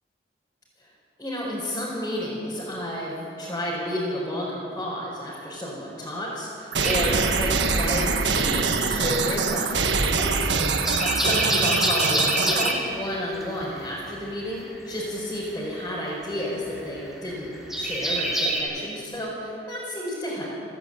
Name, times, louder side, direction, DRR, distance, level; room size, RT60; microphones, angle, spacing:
voice 1, 1.2-17.5 17.7-20.4, equal, 15° left, -7 dB, 4.8 m, -31 dB
sound 1, 6.7-12.7, right 4 dB, 85° right, 1.4 m, -24 dB
sound 2, 6.8-8.2 8.5-18.6, equal, ahead, 3.3 m, -28 dB
28.5 x 10.5 x 8.8 m, 2.9 s
head